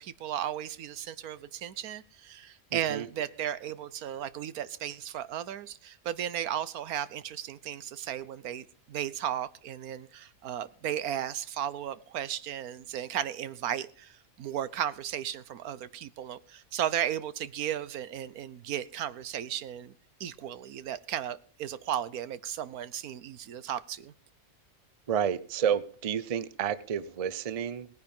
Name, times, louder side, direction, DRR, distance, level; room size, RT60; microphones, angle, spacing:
voice 1, 0.0-19.9 20.2-24.1, right 10 dB, 90° right, 1.3 m, -35 dB
voice 2, 2.7-3.1 25.1-27.9, right 8 dB, 40° right, 0.5 m, -30 dB
18.0 x 9.7 x 5.4 m
omnidirectional pair, 1.5 m